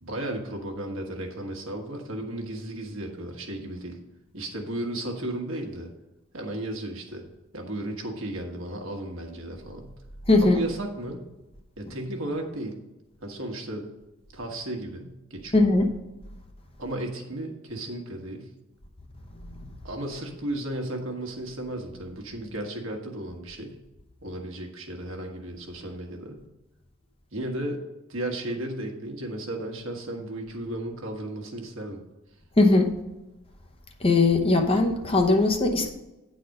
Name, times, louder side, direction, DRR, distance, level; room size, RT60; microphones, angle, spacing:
voice 1, 0.0-4.0 4.3-5.9 6.3-7.2 7.5-10.0 10.4-11.2 11.8-12.8 13.2-13.9 14.3-15.7 16.8-18.5 19.8-23.8 24.2-26.4 27.3-27.8 28.1-32.0, right 1 dB, 65° right, 2 dB, 1.3 m, -34 dB
voice 2, 10.3-10.6 15.5-15.9 32.6-32.9 34.0-35.9, left 2 dB, 25° left, 4 dB, 0.8 m, -20 dB
9.0 x 4.1 x 6.4 m, 1.0 s
head